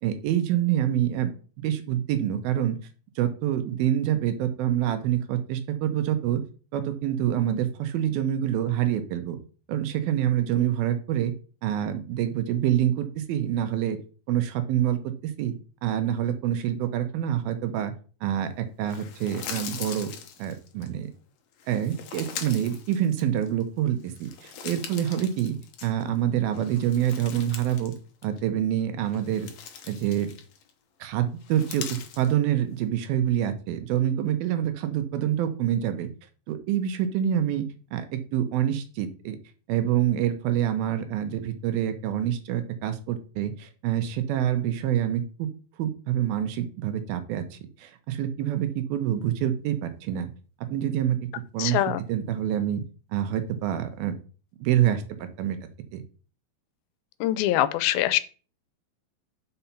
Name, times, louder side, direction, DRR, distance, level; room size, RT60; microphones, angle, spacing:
voice 1, 0.0-1.3 1.6-2.8 3.2-6.4 6.7-9.4 9.7-11.3 11.6-14.0 14.3-15.6 15.8-17.9 18.2-20.1 20.4-21.1 21.7-25.6 25.8-27.9 28.2-29.5 29.9-30.3 31.0-36.1 36.5-37.7 37.9-39.4 39.7-45.5 45.8-50.3 50.7-51.2 51.5-51.8 52.1-52.8 53.1-54.1 54.6-55.6 55.9-56.0, right 11 dB, 85° right, 9 dB, 2.7 m, -26 dB
sound 1, 18.9-20.9 21.6-23.6 24.0-26.2 26.5-28.0 28.2-28.4 29.0-30.7 31.4-32.3, left 8 dB, 65° left, 1.8 m, -41 dB
voice 2, 51.6-52.0 57.2-58.2, left 14 dB, 90° left, 14 dB, 2.5 m, -23 dB
5.7 x 5.6 x 5.6 m, 0.37 s
omnidirectional pair, 4.2 m